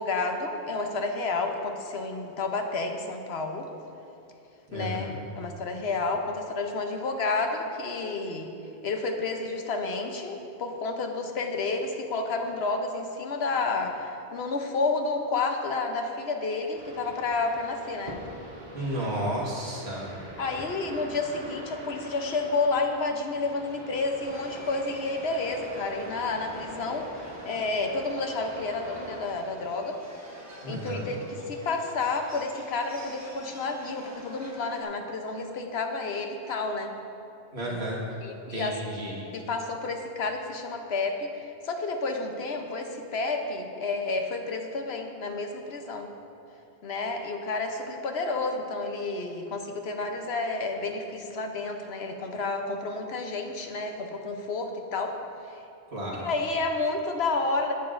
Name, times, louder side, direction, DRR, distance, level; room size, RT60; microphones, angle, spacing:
voice 1, 0.0-3.7 4.7-8.5 8.8-18.2 20.4-27.1 27.5-30.0 30.7-36.9 37.7-37.8 38.2-38.8 39.3-41.3 41.6-46.1 46.8-55.2 55.5-55.6 56.2-57.7, left 3 dB, 70° left, 4 dB, 1.0 m, -30 dB
voice 2, 4.7-5.2 18.7-20.1 30.6-31.1 37.5-38.0 38.5-39.1 55.9-56.2, right 1 dB, 65° right, -5 dB, 2.0 m, -32 dB
sound 1, 16.7-29.2, equal, 45° right, 2.7 m, -45 dB
Subway metro underground, 24.2-34.8, equal, 15° right, 1.1 m, -47 dB
17.5 x 6.7 x 2.5 m, 2.7 s
omnidirectional pair, 1.1 m